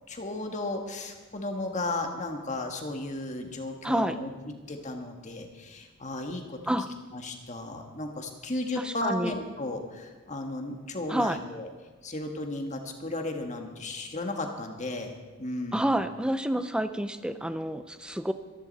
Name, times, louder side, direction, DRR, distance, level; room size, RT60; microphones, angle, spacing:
voice 1, 0.0-6.6 7.1-11.7 12.0-15.1 15.4-15.9, left 2 dB, 35° left, 4 dB, 1.6 m, -34 dB
voice 2, 3.8-4.2 6.7-6.9 8.8-9.3 11.1-11.4 15.7-18.3, right 1 dB, 5° right, 10 dB, 0.5 m, -28 dB
24.5 x 11.0 x 4.2 m, 1.4 s
head